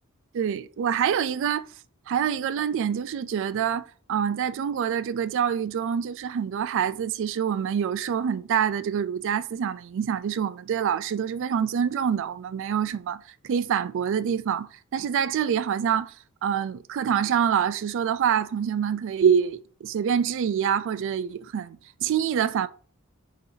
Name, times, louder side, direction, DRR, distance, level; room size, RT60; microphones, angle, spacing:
voice 1, 0.3-1.7 2.1-3.8 4.1-16.1 16.4-22.7, right 8 dB, 60° right, 0.3 m, -26 dB
4.1 x 3.9 x 2.7 m
head